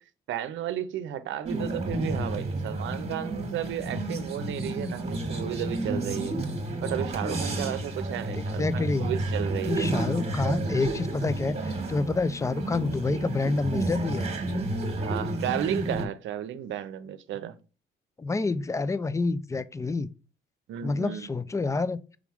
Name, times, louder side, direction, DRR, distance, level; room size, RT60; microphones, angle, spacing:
voice 1, 0.3-6.4 6.8-9.9 15.0-17.5 20.7-21.3, right 10 dB, 75° right, 0.6 m, -33 dB
sound 1, 1.5-16.1, right 2 dB, 30° right, 1.4 m, -31 dB
voice 2, 8.3-9.1 9.7-14.3 18.2-20.1 20.8-22.0, left 3 dB, 15° left, 0.4 m, -28 dB
5.0 x 3.5 x 3.0 m
cardioid pair, 90°, 20 cm